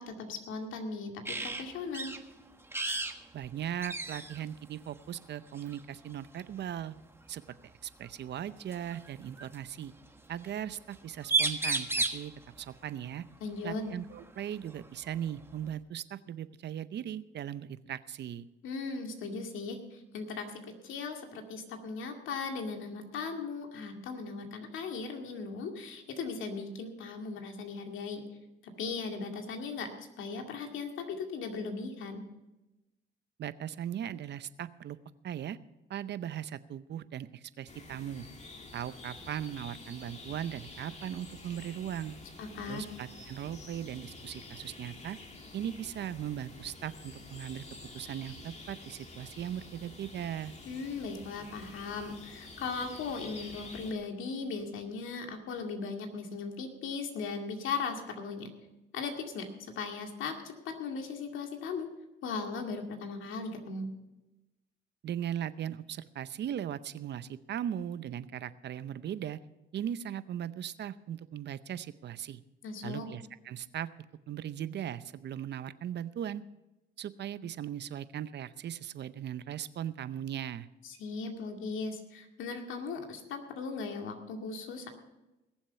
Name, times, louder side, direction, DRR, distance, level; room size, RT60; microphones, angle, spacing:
voice 1, 0.0-2.1 13.4-13.8 18.6-28.2 28.8-32.2 42.4-42.8 50.7-58.5 58.9-61.9 62.2-63.9 72.6-73.1 80.8-84.9, left 4 dB, 85° left, 3 dB, 2.2 m, -38 dB
sound 1, 1.2-1.6 1.9-2.2 2.7-3.2 3.4-3.5 3.8-4.4 5.6-5.8 7.5-7.6 8.7-9.6 10.9-11.0 11.2-12.3 14.2-14.3 14.7-15.7, right 3 dB, 10° right, 1.3 m, -32 dB
voice 2, 3.3-6.9 7.3-7.4 7.8-9.9 10.3-12.3 12.6-13.2 13.6-18.4 33.4-35.0 35.2-35.6 35.9-38.3 38.7-42.1 42.7-45.2 45.5-47.6 47.9-50.5 65.0-69.4 69.7-72.4 72.8-73.9 74.3-76.4 77.0-80.7, right 10 dB, 60° right, 15 dB, 0.7 m, -38 dB
sound 2, 37.7-53.9, left 2 dB, 35° left, 2.2 m, -49 dB
20.5 x 7.4 x 5.6 m, 1.0 s
cardioid pair, 90°, 20 cm